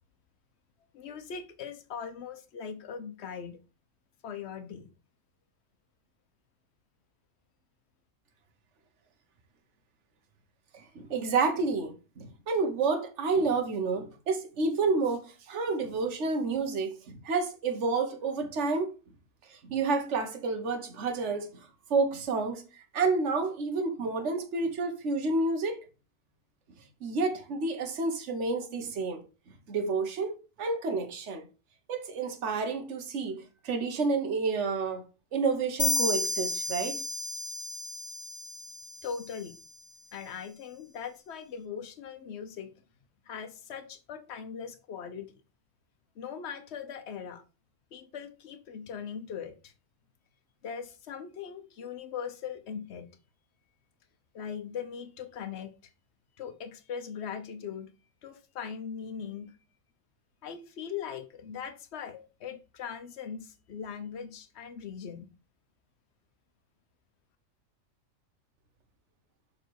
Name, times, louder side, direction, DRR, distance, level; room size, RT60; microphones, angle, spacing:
voice 1, 0.9-3.6 4.2-4.9 39.0-39.6 40.1-42.7 43.3-45.3 46.2-47.4 47.9-49.7 50.6-53.1 54.3-55.9 56.4-57.9 58.2-59.5 60.4-65.3, left 7 dB, 55° left, 1.1 m, -40 dB
voice 2, 10.7-18.9 19.5-21.5 21.9-25.8 27.0-29.2 29.7-31.4 31.9-35.0 35.3-37.0, right 4 dB, 60° right, 1.4 m, -29 dB
sound 1, 35.8-39.4, left 1 dB, 15° left, 0.9 m, -32 dB
6.6 x 3.9 x 4.6 m
omnidirectional pair, 1.4 m